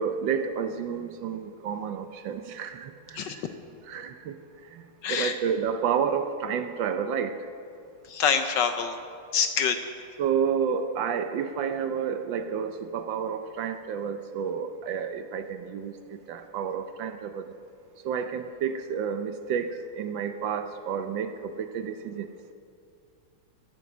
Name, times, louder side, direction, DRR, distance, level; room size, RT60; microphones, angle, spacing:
voice 1, 0.0-3.4 3.9-4.4 4.7-4.8 5.1-7.3 10.2-17.4 18.0-22.3, right 7 dB, 70° right, 9 dB, 1.2 m, -30 dB
voice 2, 5.0-5.3 8.1-9.0 9.3-9.8, left 7 dB, 70° left, 8 dB, 1.2 m, -25 dB
17.0 x 9.1 x 6.0 m, 2.5 s
omnidirectional pair, 2.3 m